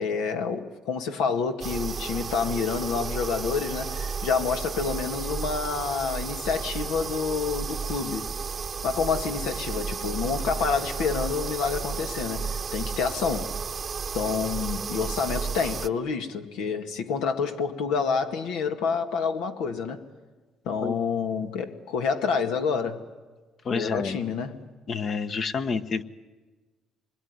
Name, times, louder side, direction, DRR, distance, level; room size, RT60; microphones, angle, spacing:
voice 1, 0.0-8.3 8.8-13.5 14.1-20.0 20.7-23.0 23.7-24.6, left 5 dB, 85° left, 2.0 m, -28 dB
sound 1, 1.6-15.9, right 5 dB, 40° right, 0.8 m, -33 dB
voice 2, 23.6-24.2 24.9-26.0, left 5 dB, 50° left, 1.2 m, -29 dB
26.5 x 21.5 x 9.7 m
supercardioid pair, 85°, 0 cm